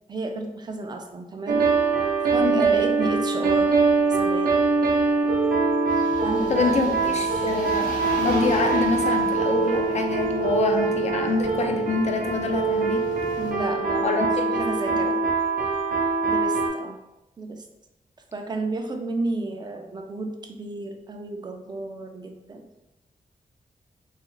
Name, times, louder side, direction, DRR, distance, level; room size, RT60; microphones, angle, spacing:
voice 1, 0.1-1.6 2.3-3.7 4.1-4.5 6.2-7.2 13.4-14.2 14.5-15.2 16.3-17.0 17.4-17.6 18.3-22.7, right 2 dB, 30° right, 4 dB, 0.3 m, -32 dB
sound 1, 1.5-16.7, right 4 dB, 80° right, 0.6 m, -23 dB
sound 2, 5.9-13.5, left 1 dB, 70° left, 1.0 m, -38 dB
voice 2, 6.5-13.0 14.0-14.6 14.9-15.0, left 3 dB, 50° left, 4 dB, 0.4 m, -26 dB
2.4 x 2.3 x 3.0 m, 0.93 s
wide cardioid pair, 130°, 15 cm